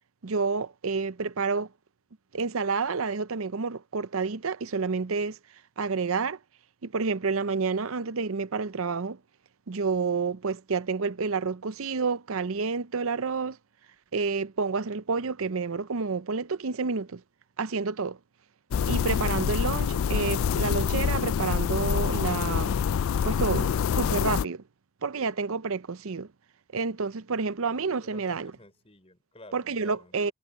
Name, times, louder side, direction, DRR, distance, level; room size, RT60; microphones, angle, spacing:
voice 1, 0.2-1.7 2.3-5.4 5.8-6.4 6.8-9.2 9.7-13.6 14.1-17.2 17.6-18.2 18.9-22.7 23.2-24.6 25.0-26.3 26.7-28.5 29.5-30.3, right 4 dB, 75° right, 0.7 m, -29 dB
sound 1, 18.7-24.4, left 7 dB, 70° left, 0.3 m, -26 dB
voice 2, 28.0-30.3, left 2 dB, 25° left, 4.3 m, -51 dB
head